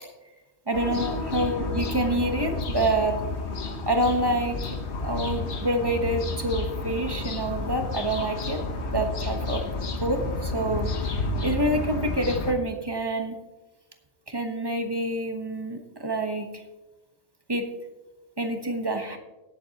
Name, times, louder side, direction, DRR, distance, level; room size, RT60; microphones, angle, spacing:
sound 1, 0.7-12.5, left 3 dB, 70° left, 1.3 m, -31 dB
voice 1, 0.7-3.2 3.8-4.8 5.0-8.6 8.9-9.6 10.0-13.4 14.3-16.6 17.5-17.7 18.4-19.2, right 1 dB, 20° right, 4 dB, 1.2 m, -27 dB
18.5 x 7.9 x 2.9 m, 1.1 s
omnidirectional pair, 1.2 m